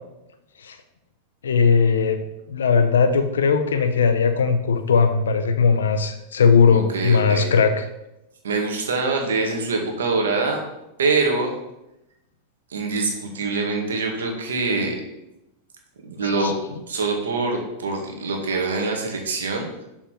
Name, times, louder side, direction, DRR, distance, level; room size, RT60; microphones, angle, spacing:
voice 1, 1.4-2.2 2.5-7.8 16.2-16.8, left 5 dB, 90° left, 8 dB, 0.9 m, -19 dB
voice 2, 6.7-7.5 8.4-10.6 11.0-11.5 12.7-15.0 16.0-16.5 16.9-19.7, right 3 dB, 90° right, 1 dB, 2.1 m, -24 dB
6.8 x 5.8 x 5.9 m, 0.90 s
hypercardioid pair, 115°, 0 cm